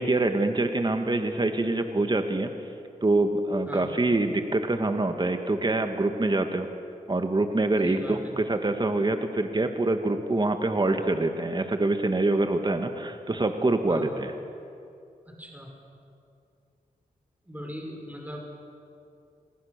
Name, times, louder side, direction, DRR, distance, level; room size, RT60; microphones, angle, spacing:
voice 1, 0.0-2.5 3.0-6.7 7.1-14.3, right 2 dB, 30° right, 6 dB, 1.8 m, -25 dB
voice 2, 7.8-8.3 13.9-14.1 15.4-15.7 17.5-18.4, equal, 10° right, 1 dB, 5.6 m, -39 dB
28.5 x 21.5 x 6.8 m, 2.5 s
cardioid pair, 55°, 15 cm